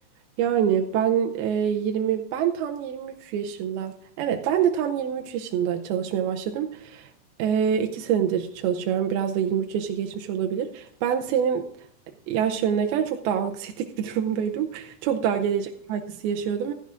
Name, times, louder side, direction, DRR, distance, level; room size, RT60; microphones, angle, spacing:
voice 1, 0.4-7.1 7.4-11.7 12.3-16.7, right 8 dB, 80° right, 4 dB, 2.5 m, -26 dB
16.0 x 13.0 x 2.5 m, 0.66 s
omnidirectional pair, 4.6 m